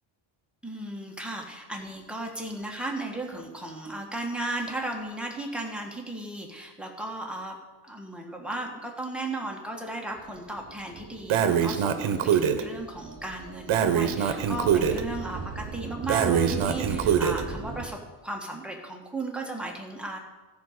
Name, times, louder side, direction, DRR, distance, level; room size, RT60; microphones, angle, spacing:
voice 1, 0.6-7.5 7.8-20.2, right 1 dB, ahead, 0 dB, 1.4 m, -35 dB
sound 1, 10.1-17.9, right 4 dB, 30° right, 1.3 m, -39 dB
Breathing, 11.3-12.6 13.7-15.0 16.1-17.4, right 8 dB, 70° right, 1.0 m, -24 dB
14.5 x 5.2 x 6.6 m, 1.2 s
cardioid pair, 145°, 50 cm